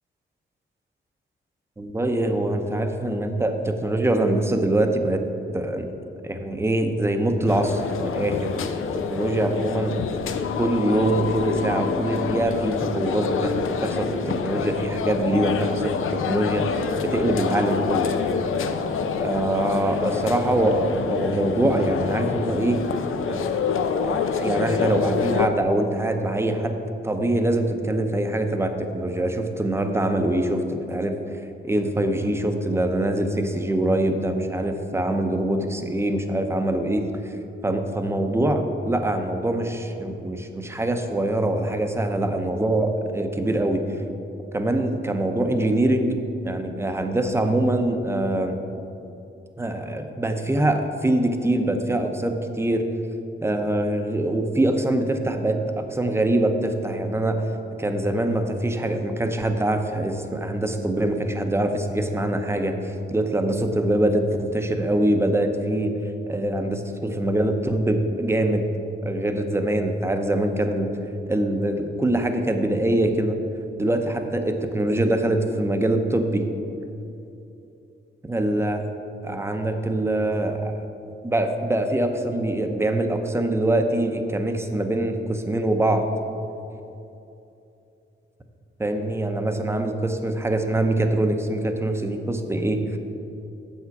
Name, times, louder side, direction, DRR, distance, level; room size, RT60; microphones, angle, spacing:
voice 1, 1.8-5.2 5.5-5.9 6.2-8.8 9.1-10.0 10.5-13.5 13.8-18.1 19.2-22.8 23.3-23.6 24.0-26.8 27.0-37.4 37.6-44.0 44.5-46.1 46.4-48.6 49.6-52.8 53.4-57.4 57.8-68.7 69.0-70.9 71.3-73.4 73.8-76.5 78.2-78.8 79.2-80.7 81.2-86.1 88.8-93.0, right 1 dB, 10° right, 5 dB, 0.6 m, -24 dB
sound 1, 7.5-25.5, left 6 dB, 85° left, 0.5 m, -27 dB
8.3 x 7.3 x 4.7 m, 2.8 s
wide cardioid pair, 120°, 21 cm